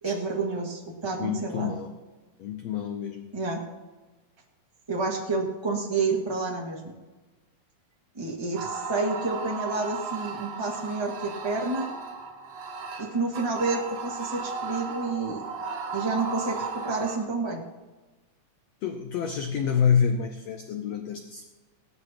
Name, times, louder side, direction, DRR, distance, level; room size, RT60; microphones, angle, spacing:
voice 1, 0.0-1.7 3.3-3.6 4.9-6.8 8.1-11.9 13.0-15.4 15.9-17.6, right 3 dB, 45° right, -2 dB, 0.3 m, -29 dB
voice 2, 1.2-1.9 2.4-3.3 18.8-21.5, left 7 dB, 80° left, 6 dB, 1.4 m, -27 dB
sound 1, 8.5-17.2, right 4 dB, 85° right, 4.1 m, -35 dB
17.5 x 13.0 x 3.0 m, 1.2 s
omnidirectional pair, 3.9 m